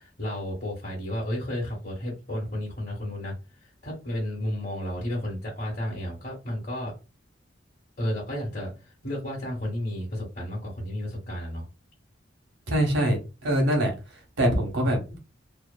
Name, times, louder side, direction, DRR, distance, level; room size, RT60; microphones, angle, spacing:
voice 1, 0.0-3.4 3.8-6.9 8.0-8.7 9.0-11.7, left 1 dB, 45° left, 1.0 m, -32 dB
voice 2, 12.7-13.9 14.4-15.0, equal, 80° right, 1.1 m, -23 dB
2.8 x 2.3 x 2.2 m
head